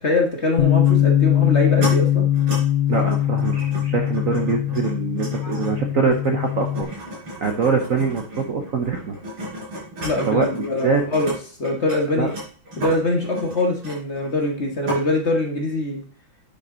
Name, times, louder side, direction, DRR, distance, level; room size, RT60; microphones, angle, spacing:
voice 1, 0.0-2.3 5.4-5.6 10.0-11.3 11.6-12.3 12.8-16.0, left 2 dB, 35° left, 2 dB, 1.7 m, -23 dB
Bass guitar, 0.6-6.8, left 11 dB, 60° left, 1.2 m, -21 dB
sound 1, 0.8-1.0 1.5-1.9 2.3-2.6 2.9-11.3 11.6-14.5 14.9-15.0, equal, 80° right, 6.0 m, -33 dB
voice 2, 2.9-6.9 7.4-9.2 10.3-10.6 10.8-11.0 12.1-12.3, right 5 dB, 50° right, 3 dB, 1.1 m, -23 dB
9.9 x 6.5 x 4.0 m, 0.41 s
omnidirectional pair, 2.3 m